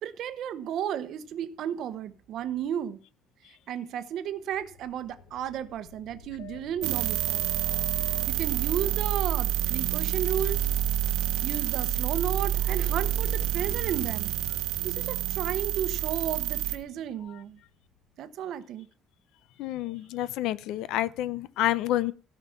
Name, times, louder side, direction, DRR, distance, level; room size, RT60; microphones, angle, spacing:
voice 1, 0.0-3.0 3.7-7.4 8.3-10.6 11.4-14.3 14.8-17.6 18.2-18.9, right 9 dB, 50° right, 1.0 m, -33 dB
sound 1, 4.3-18.0, left 6 dB, 85° left, 2.0 m, -45 dB
sound 2, 6.8-16.8, right 12 dB, 85° right, 1.3 m, -28 dB
voice 2, 19.6-22.1, left 14 dB, 65° left, 0.6 m, -28 dB
16.5 x 5.8 x 5.8 m
cardioid pair, 170°, 0 cm